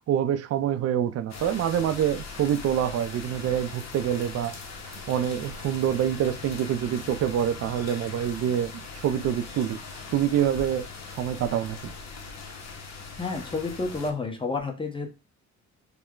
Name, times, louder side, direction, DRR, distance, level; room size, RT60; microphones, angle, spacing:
voice 1, 0.1-4.5 4.8-11.9, right 10 dB, 55° right, 0.4 m, -26 dB
sound 1, 1.3-14.1, left 4 dB, 60° left, 0.8 m, -40 dB
voice 2, 13.2-15.1, left 3 dB, 15° left, 0.8 m, -30 dB
3.2 x 2.1 x 3.7 m
cardioid pair, 85°, 30 cm